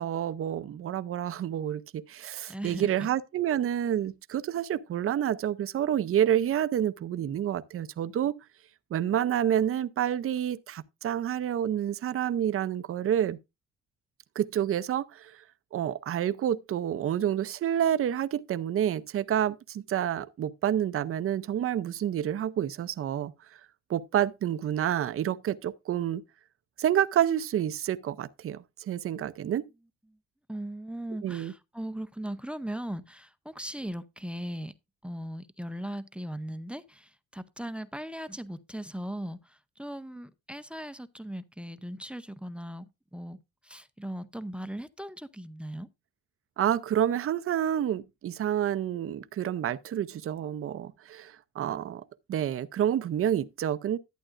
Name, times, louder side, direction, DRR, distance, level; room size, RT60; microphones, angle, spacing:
voice 1, 0.0-8.3 8.9-13.4 14.4-15.4 15.7-23.3 23.9-26.2 26.8-29.6 31.2-31.5 46.6-52.0 52.3-54.0, right 10 dB, 45° right, 0.6 m, -28 dB
voice 2, 2.5-2.9 30.5-34.7 35.0-45.9, right 1 dB, 5° right, 0.5 m, -38 dB
11.5 x 8.6 x 2.5 m
cardioid pair, 90°, 30 cm